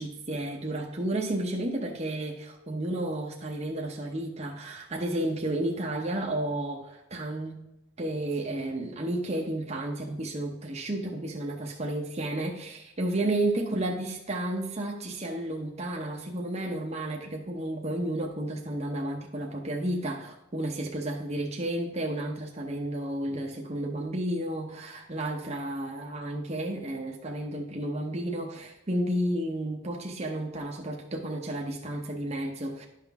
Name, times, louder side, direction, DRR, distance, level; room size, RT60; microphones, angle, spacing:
voice 1, 0.0-7.7 8.0-32.9, right 1 dB, 30° right, 0 dB, 0.8 m, -32 dB
11.0 x 5.8 x 3.5 m, 0.88 s
head